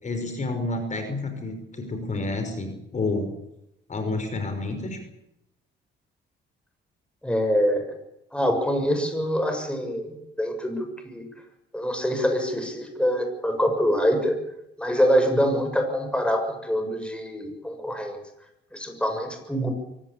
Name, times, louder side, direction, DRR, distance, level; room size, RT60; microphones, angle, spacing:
voice 1, 0.0-3.3 3.9-5.0, left 2 dB, 35° left, 7 dB, 5.5 m, -29 dB
voice 2, 7.2-8.0 8.3-11.3 11.7-14.4 14.8-18.2 18.7-19.7, equal, 5° left, 5 dB, 7.0 m, -25 dB
23.5 x 18.0 x 8.5 m, 0.85 s
cardioid pair, 90°, 20 cm